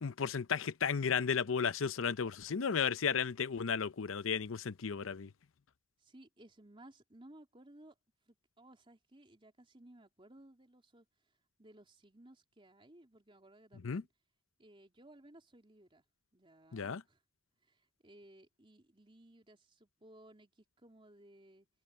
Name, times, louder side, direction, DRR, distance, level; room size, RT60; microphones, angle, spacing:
voice 1, 0.0-5.3 13.8-14.0 16.7-17.0, left 6 dB, 80° left, 0.6 m, -34 dB
voice 2, 6.0-7.9 8.3-11.1 11.6-14.1 14.6-16.0 16.3-17.2 17.6-21.7, right 1 dB, 25° right, 3.4 m, -59 dB
head